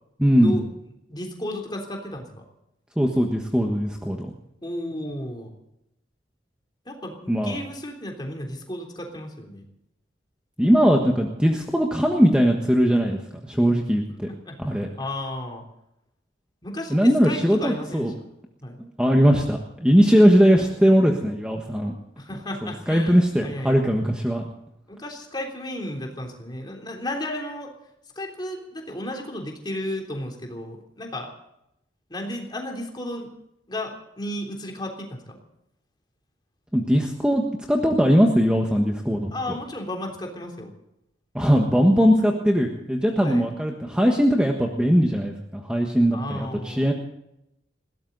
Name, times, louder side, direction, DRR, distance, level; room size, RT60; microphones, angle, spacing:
voice 1, 0.2-0.6 3.0-4.3 7.3-7.6 10.6-14.3 14.6-14.9 16.9-18.1 18.8-21.9 22.6-24.5 36.7-39.6 41.3-46.9, equal, 5° right, 1 dB, 1.4 m, -20 dB
voice 2, 1.1-2.4 4.6-5.5 6.9-9.6 14.3-15.6 16.6-18.1 18.6-18.8 22.2-23.8 24.9-27.7 28.2-31.3 32.1-33.3 33.7-35.4 39.3-40.7 43.2-43.4 46.1-46.9, left 1 dB, 20° left, 1 dB, 3.4 m, -33 dB
21.0 x 17.0 x 4.0 m, 0.83 s
head